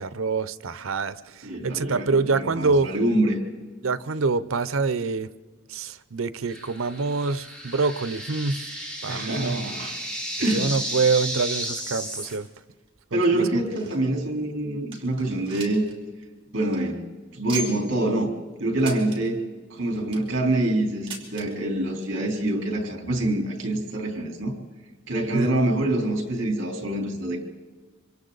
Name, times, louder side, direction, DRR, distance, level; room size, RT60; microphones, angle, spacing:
voice 1, 0.0-2.9 3.8-5.3 5.7-8.7 9.0-9.6 10.5-12.5 13.1-13.6 25.3-25.5, right 4 dB, 75° right, 15 dB, 0.7 m, -26 dB
voice 2, 1.4-3.4 9.1-10.0 10.4-10.8 13.1-15.8 16.5-17.0 17.3-18.3 18.6-19.4 19.7-24.5 25.1-27.4, right 1 dB, 60° right, 2 dB, 3.8 m, -25 dB
sound 1, 6.5-12.3, equal, 5° left, 4.4 m, -33 dB
sound 2, 10.4-10.8 11.1-11.2 11.9-12.0 12.7-14.2 14.6-14.7 14.9-15.9 16.2-16.3 16.6-16.8 17.5-18.0 18.8-19.2 19.8-20.3 21.1-21.5 22.4-22.5 22.7-22.8 23.6-23.7, right 4 dB, 25° right, 3.8 m, -38 dB
26.5 x 25.0 x 4.0 m, 1.3 s
head